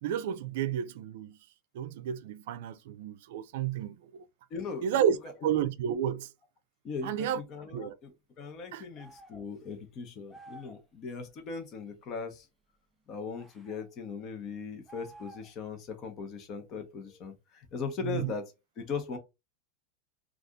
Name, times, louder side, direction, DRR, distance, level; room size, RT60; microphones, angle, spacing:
voice 1, 0.0-1.4 1.7-4.2 4.8-5.2 5.4-6.3 7.0-7.4 7.7-8.0 8.7-8.8 18.0-18.3, right 9 dB, 70° right, 0.4 m, -31 dB
voice 2, 4.5-4.9 5.2-5.3 6.8-12.5 13.1-19.2, left 5 dB, 35° left, 0.9 m, -39 dB
sound 1, 9.0-9.5 10.3-10.8 13.4-13.9 14.9-15.6, right 1 dB, ahead, 0.6 m, -51 dB
2.6 x 2.4 x 3.6 m
supercardioid pair, 135°, 0 cm